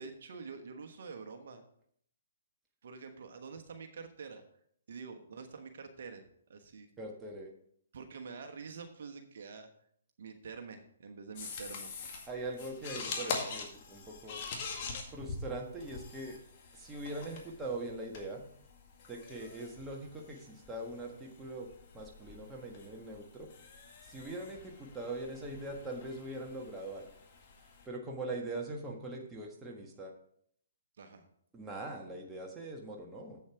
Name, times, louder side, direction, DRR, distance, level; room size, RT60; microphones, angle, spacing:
voice 1, 0.0-1.6 2.8-4.4 4.9-6.2 6.5-6.9 7.9-9.7 10.2-11.9 22.3-22.4 31.0-31.3, right 5 dB, 60° right, 6 dB, 1.2 m, -47 dB
voice 2, 7.0-7.5 12.3-14.4 15.1-16.4 16.7-18.4 19.1-23.5 24.1-27.1 27.8-30.1 31.5-33.4, right 2 dB, 10° right, -1 dB, 1.6 m, -42 dB
sound 1, 11.4-27.9, left 4 dB, 40° left, 1.9 m, -45 dB
7.9 x 7.1 x 4.6 m, 0.65 s
hypercardioid pair, 140°, 0 cm